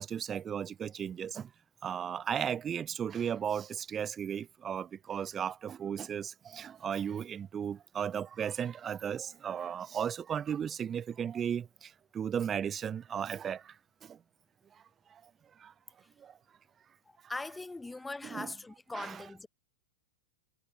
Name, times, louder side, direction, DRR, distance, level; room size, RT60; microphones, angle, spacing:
voice 1, 0.0-1.5 1.8-13.7 14.1-14.2 15.6-15.7 16.2-16.3 18.2-18.5 18.9-19.2, right 8 dB, 25° right, 0.8 m, -35 dB
voice 2, 17.1-19.5, left 2 dB, 10° left, 0.6 m, -41 dB
hypercardioid pair, 100°, 0 cm